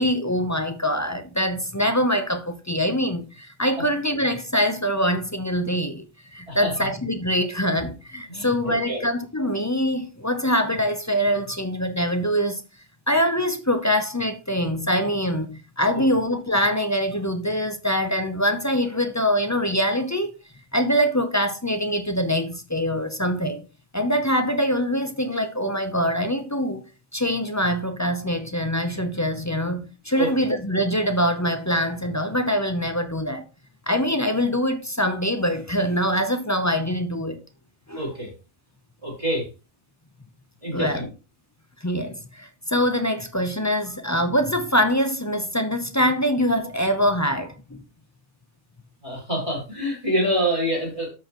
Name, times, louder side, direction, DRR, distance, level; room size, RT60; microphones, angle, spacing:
voice 1, 0.0-6.0 6.3-12.6 13.1-20.3 20.7-23.6 23.9-26.8 27.1-33.4 33.9-37.4 37.9-38.0 40.7-41.1 41.8-47.8, equal, 20° left, 0.4 m, -24 dB
voice 2, 8.3-9.0 15.9-16.0 30.2-30.3 38.0-38.3 39.0-39.5 40.6-41.0 49.0-51.1, right 1 dB, 20° right, 4.3 m, -26 dB
13.0 x 4.7 x 3.0 m
omnidirectional pair, 1.4 m